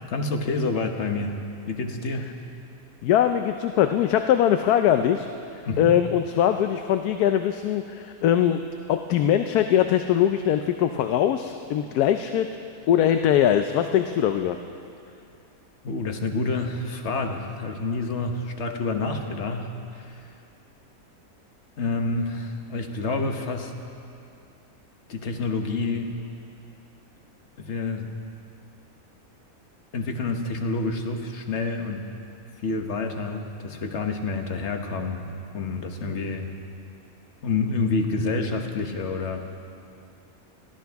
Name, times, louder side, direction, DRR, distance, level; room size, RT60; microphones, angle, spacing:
voice 1, 0.1-1.4 1.7-2.3 5.7-5.9 15.8-20.3 21.8-23.7 25.1-26.1 27.6-28.1 29.9-32.1 32.6-35.3 35.5-36.5 37.4-39.5, left 3 dB, 50° left, 4 dB, 1.3 m, -28 dB
voice 2, 3.0-5.3 5.8-8.6 8.9-12.5 12.9-14.6, left 10 dB, 90° left, 7 dB, 1.1 m, -21 dB
22.0 x 15.5 x 3.5 m, 2.6 s
omnidirectional pair, 1.6 m